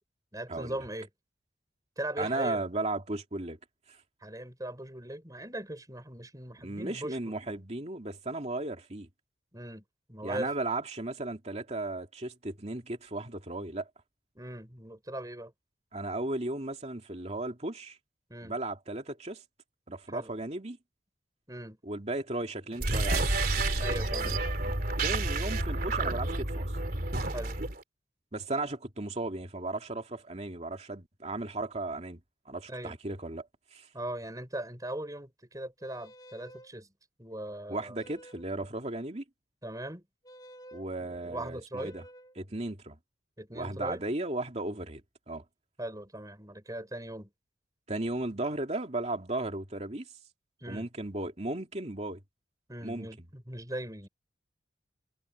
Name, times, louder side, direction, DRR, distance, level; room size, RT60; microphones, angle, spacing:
voice 1, 0.3-1.1 2.0-2.6 4.2-7.3 9.5-9.8 10.1-10.5 14.4-15.5 18.3-18.6 20.1-20.3 21.5-21.8 23.8-24.4 27.3-27.6 32.7-33.0 33.9-36.9 37.2-38.0 39.6-40.0 41.0-42.0 43.4-44.0 45.8-47.3 50.6-50.9 52.7-54.1, right 1 dB, 20° right, 7.1 m, -39 dB
voice 2, 2.2-3.6 3.9-4.0 6.6-9.1 10.2-13.9 15.9-18.0 18.4-19.4 19.9-20.8 21.8-23.3 25.0-26.8 28.3-33.9 37.7-39.2 40.7-42.0 42.4-43.0 43.5-45.0 45.3-45.4 47.9-50.1 50.7-52.2 52.8-53.3, right 2 dB, 35° right, 2.5 m, -35 dB
sound 1, 22.7-27.8, right 2 dB, 50° right, 3.1 m, -30 dB
sound 2, 35.8-36.7 38.0-38.6 40.2-40.9 41.7-42.4, right 1 dB, 20° left, 3.6 m, -52 dB
head